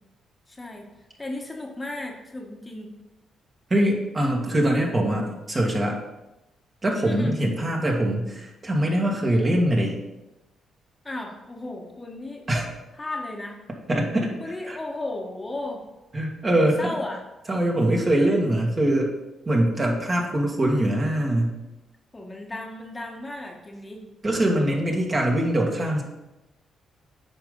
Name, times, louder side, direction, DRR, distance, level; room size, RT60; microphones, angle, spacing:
voice 1, 0.5-0.9 1.2-2.9 7.0-7.4 11.0-12.4 12.9-13.6 14.4-15.9 16.5-17.2 22.1-24.1, left 2 dB, 25° left, 1 dB, 1.3 m, -35 dB
voice 2, 3.7-6.0 6.8-9.9 12.5-12.7 13.9-14.3 14.7-14.8 16.1-16.9 17.5-19.1 19.5-21.6 24.2-26.0, right 1 dB, 30° right, 0 dB, 2.0 m, -23 dB
9.0 x 5.2 x 3.9 m, 0.97 s
supercardioid pair, 65°, 0 cm